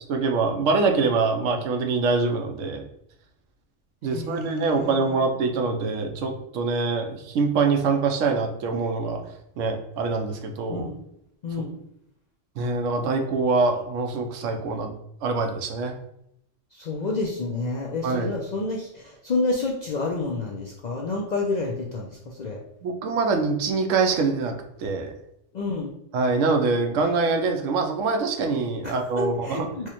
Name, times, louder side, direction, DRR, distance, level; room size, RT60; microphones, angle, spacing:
voice 1, 0.1-2.8 4.0-9.2 9.6-10.9 12.6-14.9 15.2-16.0 18.0-18.3 22.8-25.1 26.1-29.7, right 4 dB, 85° right, 4 dB, 1.0 m, -24 dB
voice 2, 4.1-5.2 10.7-11.0 11.4-11.7 16.7-22.6 25.5-25.9 28.8-29.9, left 3 dB, 60° left, -2 dB, 0.4 m, -29 dB
4.7 x 2.1 x 2.9 m, 0.77 s
omnidirectional pair, 1.3 m